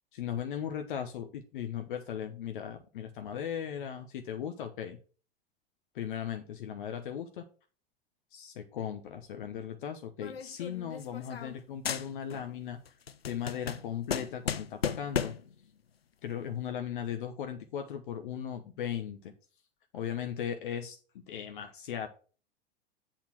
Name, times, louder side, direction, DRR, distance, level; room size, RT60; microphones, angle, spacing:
voice 1, 0.1-5.0 5.9-7.4 8.3-12.8 13.2-15.3 16.2-19.3 19.9-21.0 21.3-22.1, left 9 dB, 60° left, 6 dB, 1.0 m, -37 dB
sound 1, 10.2-11.6 11.9-12.5 12.9-15.5, left 7 dB, 80° left, 0.6 m, -35 dB
8.1 x 4.3 x 6.2 m, 0.37 s
figure-of-eight pair, 85°, 30 cm